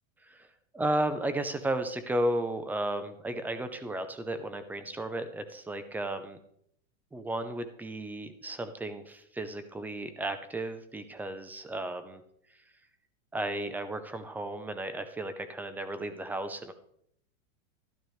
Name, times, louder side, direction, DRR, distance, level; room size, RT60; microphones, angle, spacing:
voice 1, 0.7-6.4 7.1-12.2 13.3-16.7, right 1 dB, 5° right, 10 dB, 0.5 m, -34 dB
12.5 x 12.0 x 3.2 m, 0.71 s
supercardioid pair, 145°, 40 cm